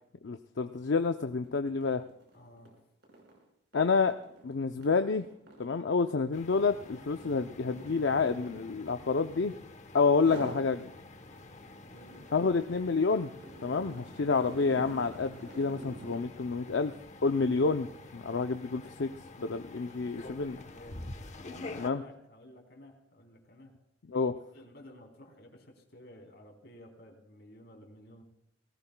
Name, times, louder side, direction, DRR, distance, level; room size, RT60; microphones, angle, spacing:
voice 1, 0.2-2.0 3.7-4.2 4.4-5.3 5.6-9.5 9.9-10.9 12.3-13.3 13.6-16.9 17.2-17.9 18.1-19.1 19.4-20.6 21.8-22.0 24.1-24.3, left 4 dB, 85° left, 7 dB, 0.6 m, -28 dB
sound 1, 0.7-0.9 1.2-9.7 10.1-10.7 11.1-16.3, right 1 dB, 65° right, 5.5 m, -48 dB
voice 2, 2.3-2.7 11.9-12.2 20.5-23.8 24.5-28.2, left 1 dB, 65° left, 2 dB, 3.5 m, -52 dB
sound 2, 6.3-21.9, left 2 dB, 40° left, 1.0 m, -48 dB
19.0 x 17.5 x 2.3 m, 0.79 s
head